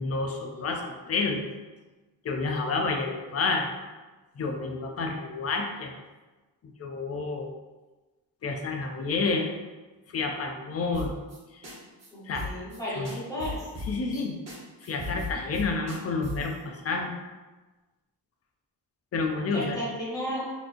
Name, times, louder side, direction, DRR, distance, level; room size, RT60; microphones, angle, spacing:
voice 1, 0.0-1.5 2.2-3.7 4.4-5.9 6.6-7.5 8.4-9.5 10.1-11.2 11.5-11.6 12.3-12.5 13.0-13.1 13.9-14.4 14.8-17.1 19.1-19.8, left 3 dB, 35° left, 3 dB, 0.4 m, -29 dB
sound 1, 10.9-11.4 11.6-11.8 12.0-12.1 12.3-12.8 13.0-14.2 14.5-14.6 14.8-16.5, left 2 dB, 40° right, 0.9 m, -37 dB
voice 2, 12.1-13.6 14.1-14.2 19.5-20.5, equal, 10° left, -9 dB, 1.0 m, -34 dB
4.2 x 2.9 x 2.5 m, 1.2 s
wide cardioid pair, 175°, 42 cm